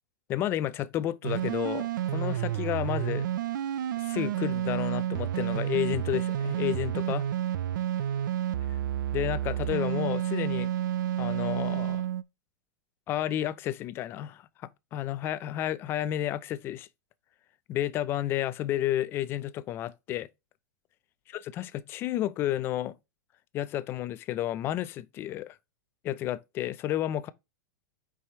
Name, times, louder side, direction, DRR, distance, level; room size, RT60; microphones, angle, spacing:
voice 1, 0.3-3.3 4.0-7.2 9.1-10.7 11.2-12.0 13.1-14.4 14.9-16.9 17.7-20.3 21.3-22.9 23.5-25.6 26.0-27.3, left 12 dB, 20° left, 0.4 m, -31 dB
sound 1, 1.2-12.2, right 11 dB, 80° right, 0.5 m, -30 dB
5.7 x 4.8 x 4.3 m
supercardioid pair, 160°, 10 cm